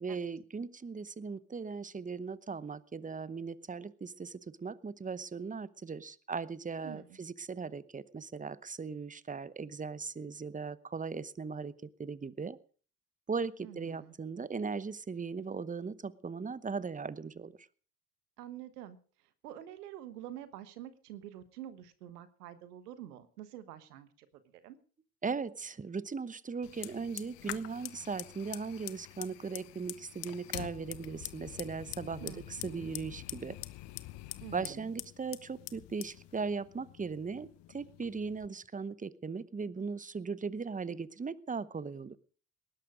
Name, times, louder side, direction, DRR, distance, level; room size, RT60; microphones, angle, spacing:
voice 1, 0.0-11.7 12.0-12.6 13.3-17.5 25.2-33.6 34.5-42.2, right 5 dB, 15° right, 18 dB, 0.9 m, -38 dB
voice 2, 6.8-7.2 13.6-14.1 18.4-19.0 19.4-24.8 32.2-32.9 34.4-34.9, right 12 dB, 90° right, 13 dB, 1.3 m, -47 dB
Fire, 26.6-38.5, left 17 dB, 65° left, 1.0 m, -46 dB
19.0 x 11.5 x 5.0 m, 0.41 s
hypercardioid pair, 60°, 45 cm